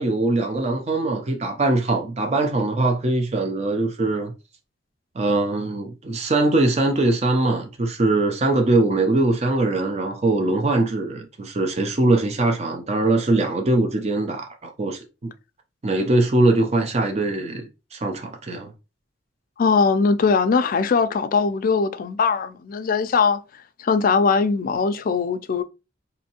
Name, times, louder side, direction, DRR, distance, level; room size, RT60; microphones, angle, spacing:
voice 1, 0.0-4.3 5.2-15.3 15.8-18.7, right 2 dB, 35° right, 0.5 m, -22 dB
voice 2, 19.6-23.4 23.8-25.6, left 5 dB, 45° left, 0.3 m, -20 dB
4.2 x 2.6 x 2.8 m
head